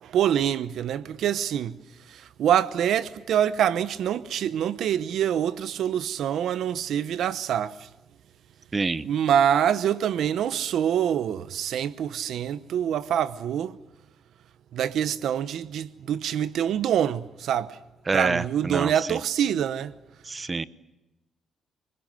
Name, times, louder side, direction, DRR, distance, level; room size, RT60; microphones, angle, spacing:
voice 1, 0.0-1.8 2.1-7.8 9.0-13.8 14.7-17.8 18.1-19.9, right 9 dB, 75° right, 0.9 m, -25 dB
voice 2, 8.7-9.0 18.1-19.2 20.3-20.6, right 3 dB, 30° right, 0.9 m, -27 dB
30.0 x 20.5 x 7.8 m
cardioid pair, 90°, 0 cm